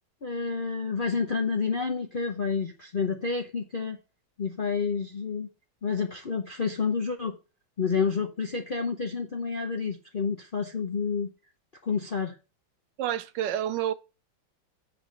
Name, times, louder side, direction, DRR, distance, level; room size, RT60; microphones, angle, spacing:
voice 1, 0.2-4.0 4.4-5.5 5.8-7.4 7.8-11.3 11.8-12.3, left 5 dB, 50° left, 0.6 m, -29 dB
voice 2, 13.0-13.9, right 11 dB, 75° right, 1.2 m, -28 dB
7.8 x 3.9 x 6.2 m
omnidirectional pair, 2.1 m